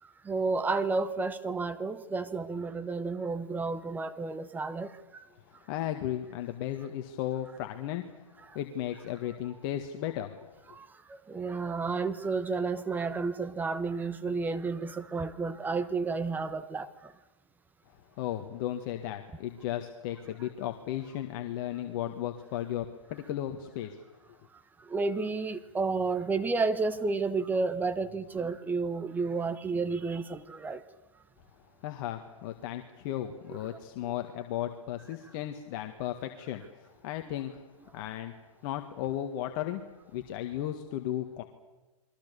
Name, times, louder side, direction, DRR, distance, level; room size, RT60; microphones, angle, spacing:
voice 1, 0.0-5.2 8.4-8.6 10.7-17.1 24.5-30.8 34.0-34.1, right 4 dB, 10° right, 1.1 m, -31 dB
voice 2, 5.3-8.3 8.5-10.8 17.9-24.0 24.3-24.4 31.8-37.7 37.9-38.3 38.6-39.8 40.1-41.4, left 12 dB, 40° left, 1.7 m, -35 dB
29.0 x 22.5 x 6.9 m
hypercardioid pair, 135°, 17 cm